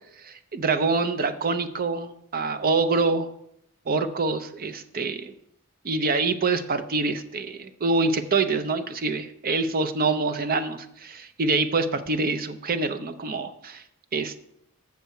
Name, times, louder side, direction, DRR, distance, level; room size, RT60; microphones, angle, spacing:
voice 1, 0.2-3.3 3.9-5.3 5.8-13.8 14.1-14.4, right 3 dB, 45° right, 9 dB, 0.7 m, -25 dB
6.8 x 6.7 x 6.4 m, 0.73 s
head